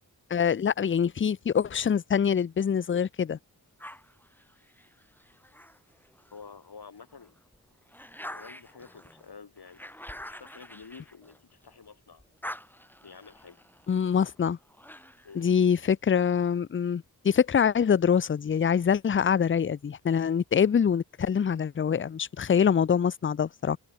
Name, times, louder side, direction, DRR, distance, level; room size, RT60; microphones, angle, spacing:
voice 1, 0.3-3.4 13.9-14.6 15.4-23.8, left 7 dB, 35° left, 0.4 m, -24 dB
sound 1, 3.8-6.5 7.0-11.8 12.1-15.4, equal, 5° left, 3.0 m, -46 dB
voice 2, 6.3-7.3 8.3-12.2 13.0-13.6 15.2-15.5, left 5 dB, 75° left, 4.1 m, -49 dB
wide cardioid pair, 80°, 39 cm